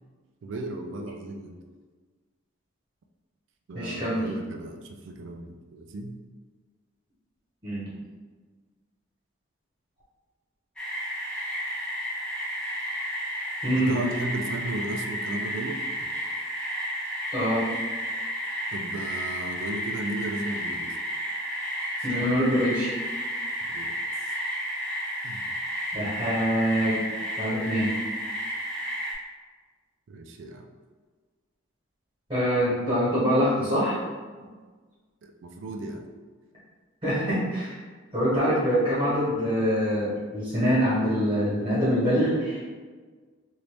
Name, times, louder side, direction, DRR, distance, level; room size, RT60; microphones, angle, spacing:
voice 1, 0.4-1.6 3.7-6.1 13.8-15.8 18.7-21.0 22.1-22.4 23.7-23.9 25.2-25.5 30.1-30.7 35.4-36.1, right 2 dB, 65° right, 4 dB, 0.3 m, -35 dB
voice 2, 3.7-4.3 7.6-7.9 13.6-13.9 17.3-17.6 22.0-22.9 25.9-27.0 27.4-27.9 32.3-34.0 37.0-37.8 38.1-42.6, equal, 25° right, -11 dB, 1.2 m, -24 dB
sound 1, 10.8-29.1, equal, 5° left, 0.5 m, -32 dB
2.9 x 2.6 x 3.3 m, 1.4 s
head